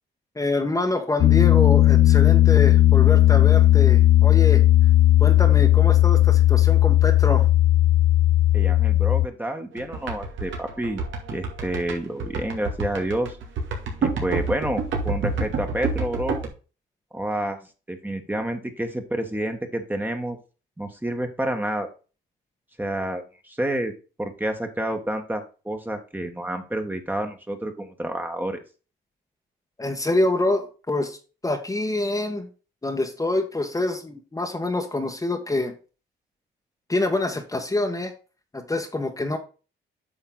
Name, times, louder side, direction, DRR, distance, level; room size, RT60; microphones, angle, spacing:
voice 1, 0.3-4.6 5.2-7.5 29.8-31.2 31.4-32.5 32.8-35.7 36.9-38.1 38.5-39.4, left 2 dB, 15° left, 3 dB, 1.5 m, -26 dB
Piano, 1.2-9.3, left 14 dB, 60° left, 0.6 m, -16 dB
voice 2, 8.5-11.0 11.3-13.4 14.0-16.4 17.1-17.6 17.9-20.4 20.8-21.9 22.8-23.9 24.2-28.6, right 1 dB, 10° right, 5 dB, 1.7 m, -29 dB
sound 1, 9.8-16.5, right 3 dB, 75° right, 2.6 m, -28 dB
9.1 x 5.6 x 4.0 m, 0.34 s
cardioid pair, 90°, 20 cm